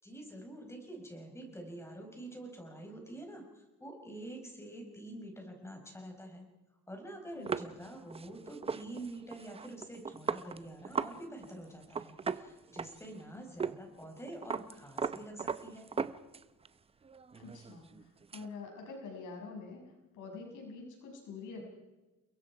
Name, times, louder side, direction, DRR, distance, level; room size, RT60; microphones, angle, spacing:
voice 1, 0.0-6.4 6.9-15.9, right 1 dB, 10° left, 2 dB, 4.9 m, -47 dB
sound 1, 7.5-11.2 11.4-11.5 11.8-13.2 13.6-13.8 14.0-16.7 17.0-18.5, right 5 dB, 20° right, 0.7 m, -38 dB
voice 2, 17.4-19.8 20.1-21.6, left 4 dB, 80° left, 1 dB, 6.7 m, -46 dB
30.0 x 22.0 x 4.8 m, 1.1 s
cardioid pair, 155°, 30 cm